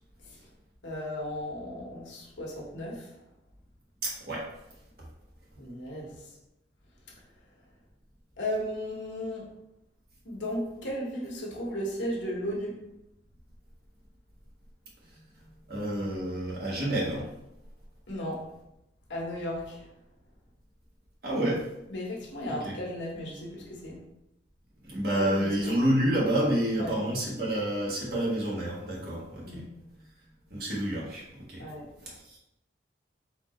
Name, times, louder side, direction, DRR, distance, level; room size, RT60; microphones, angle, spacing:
voice 1, 0.8-3.2 5.5-6.3 8.4-9.5 10.2-12.8 18.1-18.4 19.1-19.9 21.9-24.0 25.2-25.7 26.8-27.0 29.4-29.7 31.6-31.9, equal, 80° left, -3 dB, 1.2 m, -35 dB
voice 2, 4.0-4.5 15.1-17.3 21.2-21.6 22.6-22.8 24.8-29.6 30.5-31.6 32.0-32.4, right 1 dB, 50° right, -4 dB, 1.4 m, -29 dB
4.2 x 2.8 x 4.3 m, 0.87 s
head